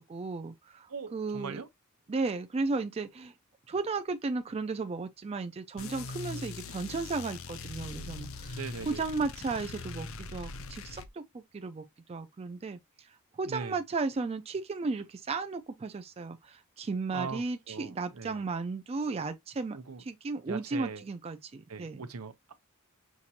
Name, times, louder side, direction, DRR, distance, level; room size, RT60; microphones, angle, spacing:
voice 1, 0.0-1.6 2.1-3.3 3.7-12.8 13.4-22.0, right 3 dB, 25° right, 0.3 m, -35 dB
voice 2, 0.9-1.7 8.5-9.0 13.5-13.8 17.1-18.4 19.7-20.0 20.5-21.0 21.7-22.5, right 5 dB, 85° right, 0.7 m, -40 dB
sound 1, 5.8-11.1, left 4 dB, 65° left, 0.5 m, -41 dB
5.8 x 2.4 x 2.7 m
head